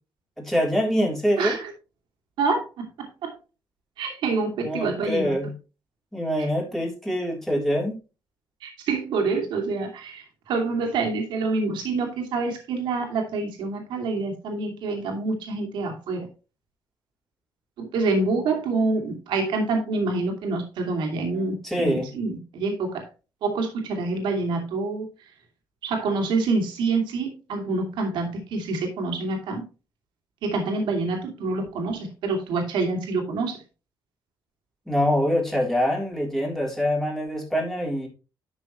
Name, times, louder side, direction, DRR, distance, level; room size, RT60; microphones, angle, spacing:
voice 1, 0.4-1.6 4.6-5.5 6.1-8.0 21.6-22.1 34.9-38.1, equal, 5° left, -2 dB, 3.5 m, -25 dB
voice 2, 1.4-1.7 2.4-3.4 4.0-5.4 6.4-6.5 8.6-16.3 17.8-23.0 23.4-25.1 25.8-29.6 30.4-33.6, right 3 dB, 90° right, 2 dB, 2.6 m, -27 dB
11.5 x 6.3 x 3.1 m, 0.32 s
cardioid pair, 125°, 8 cm